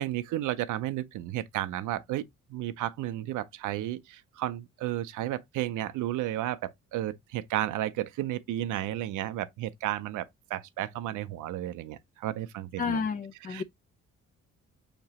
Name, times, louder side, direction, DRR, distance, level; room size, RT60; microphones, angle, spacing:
voice 1, 0.0-2.2 2.5-13.0 13.4-13.6, right 13 dB, 80° right, 0.5 m, -33 dB
voice 2, 12.8-13.6, left 6 dB, 30° left, 0.4 m, -31 dB
6.4 x 2.9 x 2.8 m
cardioid pair, 90°, 30 cm